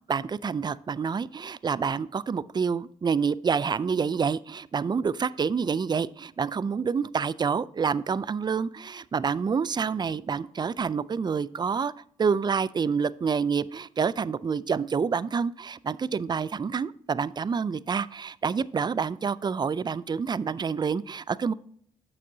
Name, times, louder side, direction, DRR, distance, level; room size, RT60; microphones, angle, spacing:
voice 1, 0.1-11.9 12.2-21.5, right 6 dB, 30° right, 18 dB, 0.4 m, -28 dB
8.7 x 6.6 x 2.7 m, 0.63 s
supercardioid pair, 60°, 14 cm